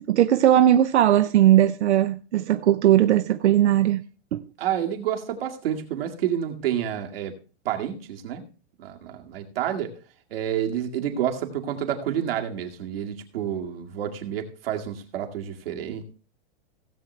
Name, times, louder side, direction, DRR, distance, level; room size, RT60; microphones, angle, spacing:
voice 1, 0.1-4.0 4.3-4.4, right 12 dB, 90° right, 0.7 m, -18 dB
voice 2, 4.6-7.3 7.6-8.4 8.8-9.9 10.3-16.1, right 10 dB, 60° right, 2.2 m, -29 dB
17.0 x 7.8 x 3.3 m
supercardioid pair, 170°, 33 cm